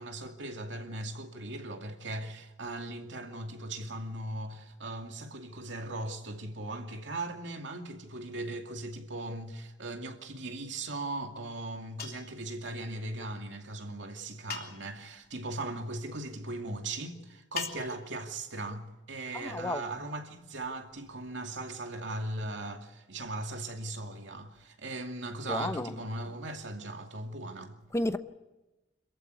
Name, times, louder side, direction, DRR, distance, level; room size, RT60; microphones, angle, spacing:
voice 1, 0.0-27.8, right 2 dB, 80° right, 2.4 m, -38 dB
sound 1, 12.0-12.4 14.5-15.0 17.6-18.2, left 6 dB, 55° left, 3.3 m, -40 dB
voice 2, 19.3-19.8 25.5-26.0 27.9-28.2, left 1 dB, 15° left, 0.8 m, -32 dB
27.0 x 15.0 x 9.4 m
head